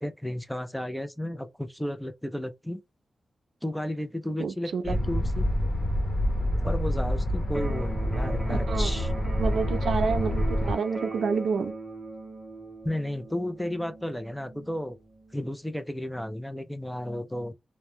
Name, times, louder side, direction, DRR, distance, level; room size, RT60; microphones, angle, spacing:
voice 1, 0.0-2.8 3.6-5.5 6.6-9.1 12.8-15.0 15.3-17.5, left 1 dB, 5° left, 0.4 m, -33 dB
voice 2, 4.4-4.8 8.5-9.0 9.4-11.7, right 5 dB, 85° right, 0.3 m, -29 dB
sound 1, 4.8-10.7, equal, 40° left, 0.9 m, -27 dB
Electric guitar, 7.5-15.5, right 3 dB, 20° right, 0.7 m, -40 dB
2.2 x 2.1 x 3.0 m
wide cardioid pair, 120°, 0 cm